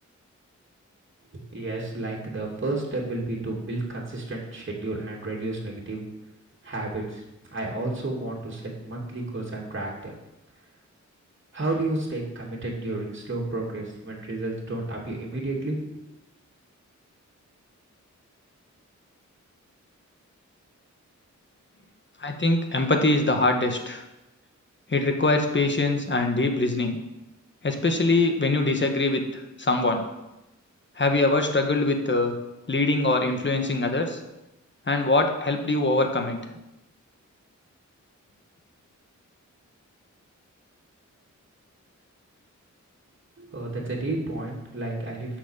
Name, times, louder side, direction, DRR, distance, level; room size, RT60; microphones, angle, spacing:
voice 1, 1.3-6.0 6.6-7.2 7.5-10.1 11.5-15.8 43.4-45.4, right 2 dB, 40° right, -3 dB, 2.7 m, -31 dB
voice 2, 22.2-24.0 24.9-27.0 27.6-30.0 31.0-32.3 32.7-34.2 34.9-36.4, left 2 dB, 40° left, 5 dB, 1.4 m, -23 dB
8.0 x 6.2 x 7.3 m, 0.95 s
wide cardioid pair, 75°, 30 cm